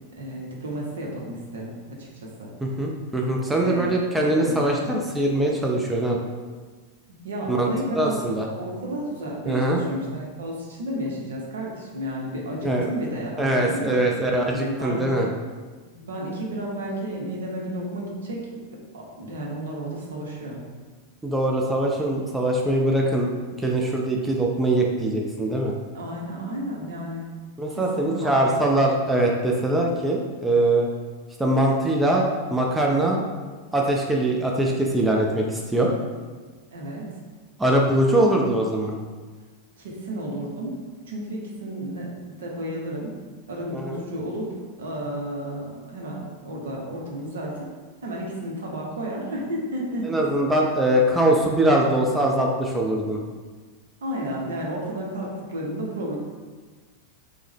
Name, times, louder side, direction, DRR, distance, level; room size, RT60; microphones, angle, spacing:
voice 1, 0.2-2.5 3.6-5.0 7.1-8.2 8.5-14.1 14.5-15.1 15.8-18.6 18.9-20.6 25.9-27.3 27.7-28.8 29.7-29.9 36.7-37.1 39.8-40.8 41.0-43.1 43.5-47.7 48.0-50.1 54.0-56.2, right 1 dB, 65° right, -2 dB, 0.6 m, -32 dB
voice 2, 2.6-6.2 7.5-7.7 8.0-8.5 9.5-9.8 12.6-12.9 13.4-15.3 21.2-23.3 23.6-25.7 27.6-30.9 31.4-33.3 33.7-35.9 37.6-39.0 43.7-44.0 50.0-53.2, right 1 dB, 10° right, -1 dB, 0.3 m, -22 dB
3.1 x 2.0 x 3.4 m, 1.4 s
figure-of-eight pair, 90°, 0 cm